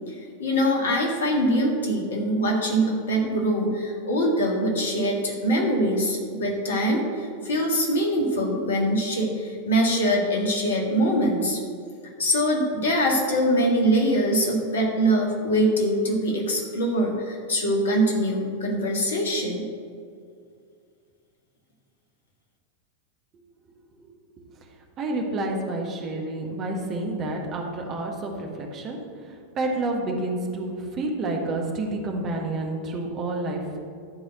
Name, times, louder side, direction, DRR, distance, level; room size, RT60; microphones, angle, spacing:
voice 1, 0.4-11.6 12.2-19.6, equal, 65° left, 0 dB, 1.8 m, -23 dB
voice 2, 25.0-29.0 29.2-33.8, right 2 dB, 30° right, 1 dB, 1.5 m, -29 dB
12.0 x 4.0 x 7.8 m, 2.3 s
figure-of-eight pair, 90°, 0 cm